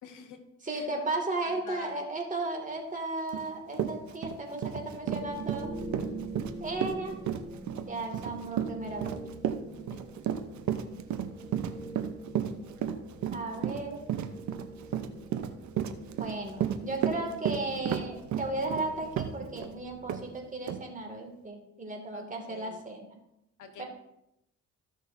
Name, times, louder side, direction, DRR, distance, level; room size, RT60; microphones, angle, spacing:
voice 1, 0.0-0.9 1.4-1.9 9.9-10.0 13.7-13.9 22.1-22.8 23.6-23.8, left 5 dB, 80° left, 5 dB, 1.3 m, -47 dB
voice 2, 0.6-5.7 6.6-7.2 7.9-9.2 13.3-14.0 16.2-23.0 23.8-23.9, right 2 dB, 25° right, 1 dB, 2.2 m, -35 dB
Run, 3.3-3.4 3.7-19.7 20.1-20.2 20.7-20.8, right 10 dB, 70° right, 0.8 m, -32 dB
sound 1, 5.0-20.7, right 1 dB, 5° right, 3.6 m, -45 dB
14.5 x 6.3 x 2.7 m, 0.84 s
cardioid pair, 90°, 30 cm